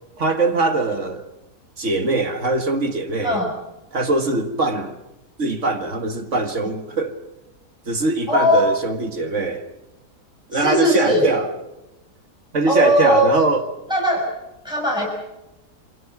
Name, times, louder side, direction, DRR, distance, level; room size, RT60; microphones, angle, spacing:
voice 1, 0.2-1.3 1.8-3.4 3.9-5.0 5.4-7.2 7.9-9.7 10.5-11.5 12.5-13.6, right 2 dB, 45° right, 2.1 m, -22 dB
voice 2, 8.3-8.7 10.5-11.3 12.7-13.3 13.9-14.3 14.6-15.1, equal, ahead, 6.7 m, -18 dB
27.5 x 23.5 x 6.0 m
omnidirectional pair, 1.8 m